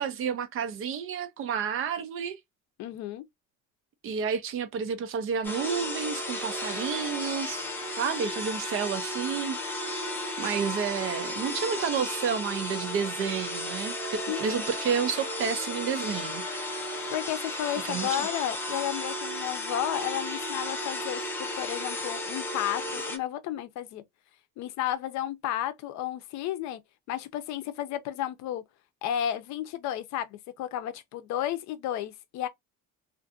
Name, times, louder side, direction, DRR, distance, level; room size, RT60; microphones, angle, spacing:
voice 1, 0.0-2.4 4.0-7.7 8.0-10.0 10.4-16.4 17.8-18.3, right 7 dB, 45° right, 0.5 m, -30 dB
voice 2, 2.8-3.2 14.3-14.4 17.1-24.0 24.6-26.8 27.1-28.6 29.0-32.5, left 11 dB, 65° left, 0.6 m, -32 dB
sound 1, 5.4-23.2, left 1 dB, 5° left, 0.5 m, -34 dB
2.5 x 2.5 x 2.4 m
cardioid pair, 170°, 30 cm